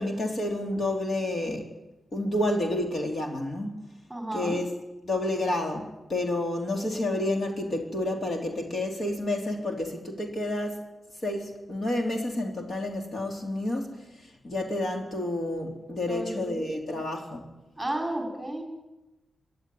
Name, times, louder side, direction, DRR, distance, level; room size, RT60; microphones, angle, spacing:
voice 1, 0.0-1.7 2.1-3.7 4.3-4.8 5.0-10.8 11.2-17.5, left 1 dB, 40° left, 2 dB, 3.3 m, -30 dB
voice 2, 4.1-4.6 16.1-16.6 17.8-18.6, right 1 dB, 5° right, 1 dB, 5.0 m, -32 dB
25.0 x 11.5 x 9.3 m, 1.0 s
wide cardioid pair, 155°, 0 cm